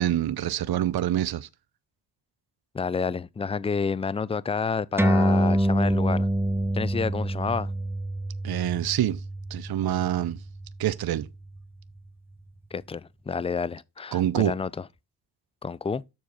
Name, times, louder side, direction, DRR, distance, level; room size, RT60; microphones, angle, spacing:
voice 1, 0.0-1.5 8.4-9.2 9.5-10.4 10.8-11.3 14.1-14.5, right 12 dB, 60° right, 0.6 m, -26 dB
voice 2, 2.7-6.3 6.7-7.7 12.7-14.8 15.6-16.0, left 5 dB, 15° left, 0.3 m, -29 dB
sound 1, 5.0-11.8, right 1 dB, 5° right, 0.9 m, -27 dB
7.3 x 4.3 x 4.7 m
cardioid pair, 70°, 42 cm